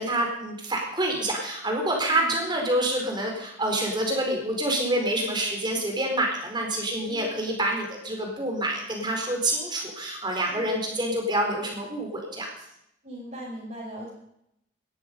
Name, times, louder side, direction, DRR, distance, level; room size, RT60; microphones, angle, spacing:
voice 1, 0.0-12.5, right 1 dB, 25° right, 1 dB, 4.6 m, -27 dB
voice 2, 13.0-14.1, right 1 dB, 40° right, -8 dB, 6.0 m, -39 dB
19.0 x 13.5 x 5.5 m, 0.77 s
head